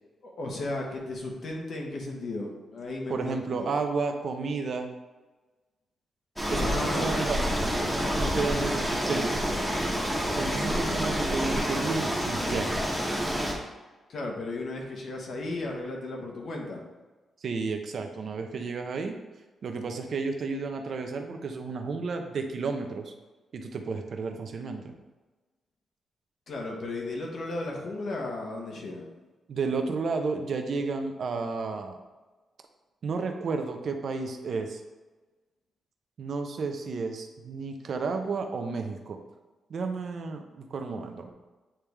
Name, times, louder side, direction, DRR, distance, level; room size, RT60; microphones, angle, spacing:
voice 1, 0.2-3.7 6.5-7.2 14.1-16.8 26.5-29.1, left 2 dB, 55° left, 0 dB, 1.3 m, -35 dB
voice 2, 3.1-4.9 6.5-7.8 8.1-9.5 10.3-12.7 17.4-19.2 19.6-23.1 23.5-24.9 29.5-32.0 33.0-34.8 36.2-39.2 39.7-41.3, right 4 dB, 50° right, 5 dB, 0.7 m, -32 dB
sound 1, 6.4-13.5, equal, 5° left, 1.2 m, -28 dB
8.8 x 3.4 x 3.4 m, 1.2 s
wide cardioid pair, 150°, 0 cm